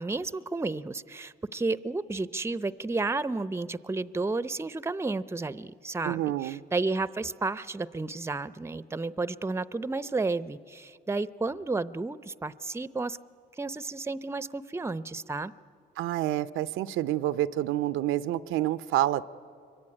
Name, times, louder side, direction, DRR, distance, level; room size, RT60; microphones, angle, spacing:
voice 1, 0.0-13.2 13.6-15.5, right 3 dB, 15° right, 16 dB, 0.6 m, -32 dB
voice 2, 6.0-6.6 16.0-19.2, right 13 dB, 85° right, 13 dB, 0.6 m, -28 dB
25.5 x 23.5 x 9.9 m, 2.3 s
cardioid pair, 90°, 20 cm